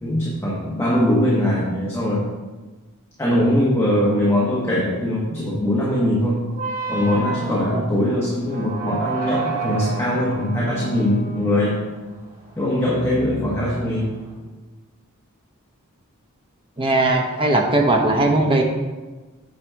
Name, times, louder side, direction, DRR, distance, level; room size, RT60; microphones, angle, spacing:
voice 1, 0.0-2.3 3.2-6.4 6.9-11.8 12.6-14.1, left 1 dB, 10° left, -5 dB, 1.1 m, -21 dB
sound 1, 6.5-14.3, right 4 dB, 70° right, 2.5 m, -31 dB
voice 2, 16.8-18.6, right 2 dB, 25° right, 1 dB, 0.9 m, -18 dB
8.8 x 5.9 x 3.6 m, 1.2 s
head